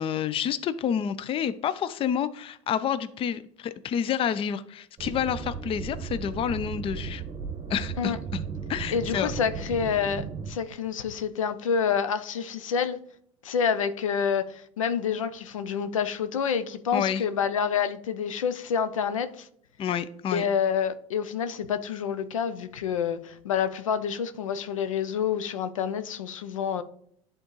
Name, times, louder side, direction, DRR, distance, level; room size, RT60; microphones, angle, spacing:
voice 1, 0.0-7.2 7.7-8.4 8.7-9.3 16.9-17.2 19.8-20.4, left 8 dB, 35° left, 0.5 m, -29 dB
sound 1, 5.0-10.5, right 6 dB, 30° right, 1.0 m, -35 dB
voice 2, 8.9-13.0 13.4-19.5 20.3-26.8, left 7 dB, 85° left, 0.5 m, -28 dB
11.0 x 3.7 x 3.1 m
hypercardioid pair, 80°, 17 cm